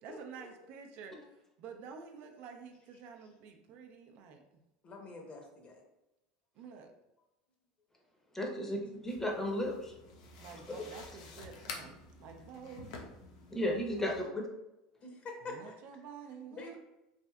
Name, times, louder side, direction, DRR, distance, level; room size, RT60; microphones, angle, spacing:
voice 1, 0.0-4.4 6.6-6.9 10.4-13.0 13.8-14.4 15.4-16.8, right 6 dB, 60° right, 4 dB, 0.4 m, -50 dB
voice 2, 4.8-5.7 15.0-15.7 16.6-16.8, left 3 dB, 40° left, 2 dB, 0.8 m, -45 dB
voice 3, 8.3-9.9 13.5-14.4, left 1 dB, 10° left, 0 dB, 0.7 m, -34 dB
sound 1, 9.1-14.2, left 3 dB, 75° left, 0.5 m, -49 dB
3.2 x 2.6 x 2.3 m, 0.91 s
hypercardioid pair, 90°, 4 cm